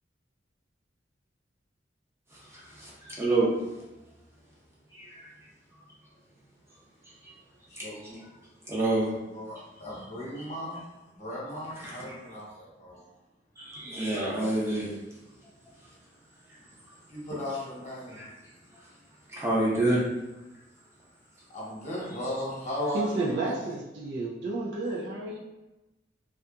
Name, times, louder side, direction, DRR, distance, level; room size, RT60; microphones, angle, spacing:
voice 1, 2.3-3.5 3.8-3.9 4.9-5.3 5.7-5.8 7.0-7.4 7.7-7.8 8.1-8.2 8.6-9.1 10.4-10.5 11.7-12.2 13.6-15.0 15.4-15.9 16.5-16.6 18.1-18.3 18.7-18.9 19.3-20.0, right 2 dB, 15° right, -6 dB, 0.6 m, -29 dB
voice 2, 7.7-8.2 9.3-10.9 11.1-13.1 17.1-18.3 21.5-23.5, equal, 40° left, -6 dB, 0.9 m, -36 dB
voice 3, 22.9-25.4, right 2 dB, 65° right, -1 dB, 0.4 m, -31 dB
2.7 x 2.3 x 2.3 m, 1.0 s
head